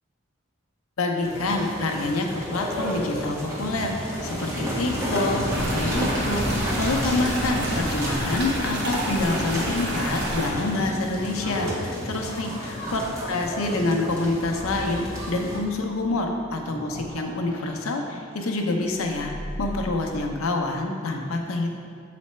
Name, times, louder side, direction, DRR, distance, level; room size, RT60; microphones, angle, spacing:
voice 1, 1.0-6.4 6.8-19.3 19.6-21.7, left 2 dB, 75° left, 2 dB, 0.7 m, -27 dB
sound 1, 1.2-15.6, equal, 15° right, 1.3 m, -30 dB
sound 2, 5.5-10.5, right 1 dB, 55° right, 1.0 m, -30 dB
sound 3, 14.4-20.1, equal, 75° right, 1.4 m, -40 dB
7.4 x 4.2 x 4.3 m, 2.3 s
head